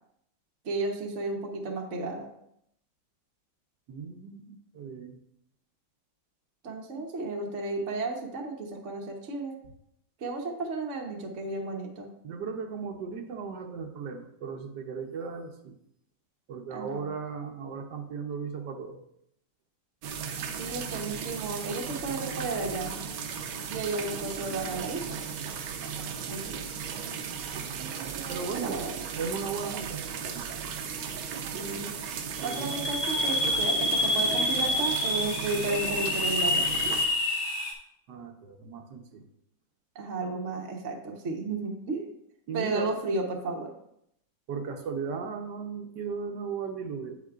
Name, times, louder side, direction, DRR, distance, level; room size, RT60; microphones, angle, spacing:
voice 1, 0.6-2.3 6.6-9.5 10.2-12.1 16.7-17.0 20.6-23.0 23.7-25.2 26.3-26.5 28.5-29.0 31.5-31.9 32.4-36.7 39.9-42.1 42.5-43.7, right 3 dB, 45° right, 0 dB, 1.2 m, -33 dB
voice 2, 3.9-5.2 12.2-15.7 16.5-19.0 26.4-26.7 28.3-30.0 30.3-30.4 32.4-32.8 38.1-39.2 42.5-42.9 44.5-47.2, right 5 dB, 65° right, 5 dB, 1.4 m, -36 dB
sound 1, 20.0-37.1, right 7 dB, 85° right, 1.6 m, -36 dB
sound 2, 32.4-37.7, left 1 dB, 80° left, 2.1 m, -28 dB
8.8 x 8.2 x 2.4 m, 0.75 s
omnidirectional pair, 2.1 m